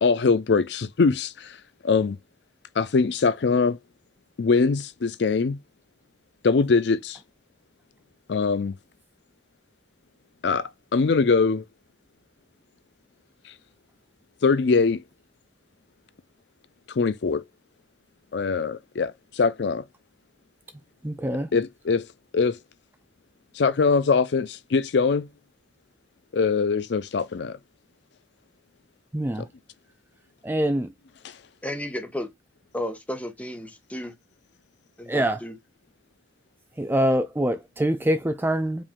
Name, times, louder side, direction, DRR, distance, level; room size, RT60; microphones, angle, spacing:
voice 1, 0.0-1.6 1.8-2.2 2.8-3.8 4.4-5.6 6.4-7.2 8.3-8.7 10.4-11.6 13.5-13.6 14.4-15.0 16.9-17.4 18.3-19.8 21.5-22.1 22.3-22.6 23.5-25.3 26.3-27.6 31.2-31.4, left 4 dB, 70° left, 0.4 m, -22 dB
voice 2, 21.0-21.5 29.1-29.5 30.4-30.9 35.1-35.4 36.8-38.8, right 1 dB, 10° right, 0.4 m, -24 dB
voice 3, 31.6-32.3 32.7-34.1 35.0-35.5, left 1 dB, 10° left, 1.0 m, -33 dB
5.1 x 2.5 x 3.6 m
head